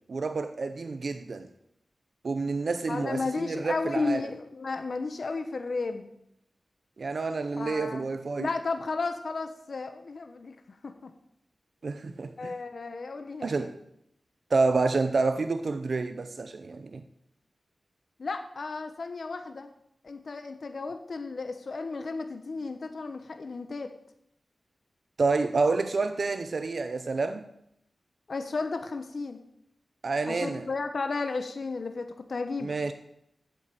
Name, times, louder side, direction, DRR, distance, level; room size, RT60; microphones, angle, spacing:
voice 1, 0.1-1.5 2.2-4.2 7.0-8.5 11.8-12.5 13.4-13.7 14.5-17.0 25.2-27.4 30.0-30.7 32.6-32.9, right 3 dB, 65° right, 0.7 m, -28 dB
voice 2, 2.9-6.1 7.6-8.1 8.4-11.1 12.4-13.7 18.2-19.7 20.0-24.0 28.3-29.4 30.3-32.8, left 3 dB, 65° left, 1.0 m, -33 dB
8.9 x 7.7 x 8.4 m
wide cardioid pair, 80°, 0 cm